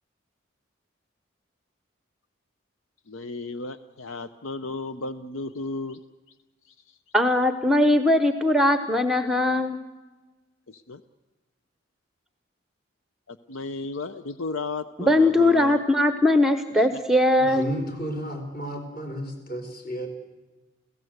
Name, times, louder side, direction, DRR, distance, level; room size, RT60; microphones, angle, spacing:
voice 1, 3.1-6.0 6.7-6.8 10.7-11.0 13.3-15.8 16.7-17.0, left 3 dB, 80° left, 11 dB, 0.7 m, -34 dB
voice 2, 7.1-9.8 15.0-17.7, left 1 dB, ahead, 9 dB, 0.8 m, -20 dB
voice 3, 17.4-20.1, equal, 45° left, 4 dB, 4.5 m, -32 dB
29.0 x 16.5 x 7.9 m, 1.2 s
head